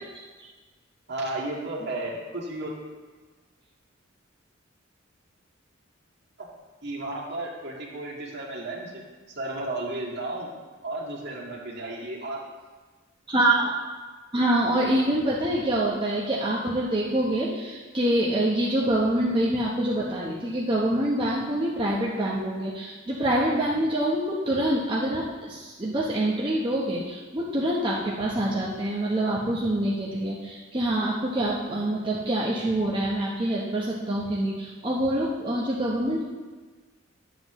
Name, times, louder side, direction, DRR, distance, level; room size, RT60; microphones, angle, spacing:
voice 1, 1.1-2.7 6.4-6.5 6.8-9.0 9.4-10.5 10.8-12.4, right 2 dB, 55° right, -4 dB, 2.0 m, -33 dB
voice 2, 13.3-13.7 14.3-36.3, right 1 dB, 25° right, -5 dB, 0.9 m, -25 dB
11.0 x 7.7 x 3.1 m, 1.3 s
head